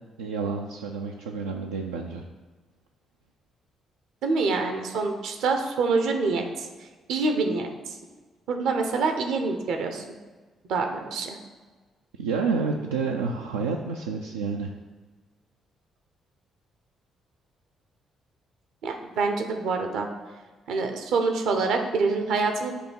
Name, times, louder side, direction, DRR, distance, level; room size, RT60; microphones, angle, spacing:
voice 1, 0.2-2.2 12.2-14.7, right 4 dB, 80° right, 1 dB, 0.3 m, -29 dB
voice 2, 4.2-6.7 7.1-7.7 8.5-10.2 10.7-11.3 18.8-20.1 20.7-22.8, right 4 dB, 65° right, 5 dB, 0.7 m, -26 dB
6.8 x 2.8 x 5.5 m, 1.3 s
hypercardioid pair, 45°, 0 cm